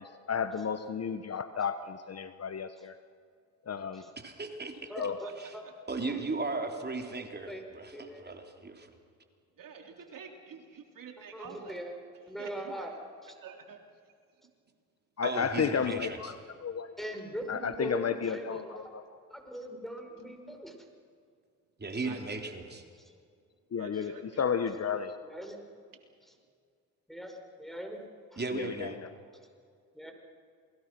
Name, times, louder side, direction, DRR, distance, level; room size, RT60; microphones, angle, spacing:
voice 1, 0.0-2.9 3.7-4.1 5.0-5.2 15.2-16.3 16.6-16.9 17.5-19.0 23.7-25.2 28.5-29.1, left 7 dB, 40° left, 11 dB, 1.3 m, -32 dB
voice 2, 4.2-5.1 5.4-5.5 5.9-8.9 15.2-16.3 21.8-22.8 28.4-29.0, right 3 dB, 25° right, 4 dB, 3.6 m, -36 dB
voice 3, 4.9-5.6 6.0-6.1 7.1-7.2 7.5-7.6 7.9-8.3 11.3-11.9 12.3-12.9 13.2-13.3 17.0-18.9 19.3-20.7 23.0-23.1 25.2-25.6 27.1-28.0 28.3-28.4 29.9-30.1, right 1 dB, ahead, 3 dB, 5.7 m, -41 dB
voice 4, 9.6-11.8 12.4-12.9 13.4-13.8 22.0-22.2 23.8-24.2, right 6 dB, 55° right, 3 dB, 3.5 m, -48 dB
28.0 x 21.5 x 6.2 m, 2.2 s
hypercardioid pair, 60°, 39 cm